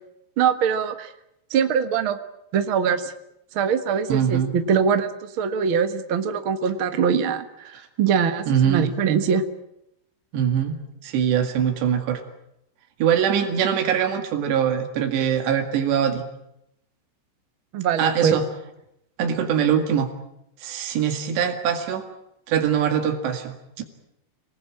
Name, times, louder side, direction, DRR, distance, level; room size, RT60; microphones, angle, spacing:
voice 1, 0.4-1.1 1.5-2.2 2.5-3.1 3.5-7.5 8.0-9.4 17.7-18.4, right 7 dB, 65° right, 8 dB, 1.3 m, -22 dB
voice 2, 4.1-4.5 7.7-7.9 8.5-8.9 10.3-10.8 11.0-12.2 13.0-16.2 18.0-18.4 19.2-20.1 20.6-22.1 22.5-23.8, right 8 dB, 85° right, 5 dB, 4.3 m, -22 dB
27.0 x 19.5 x 8.8 m, 0.82 s
omnidirectional pair, 4.8 m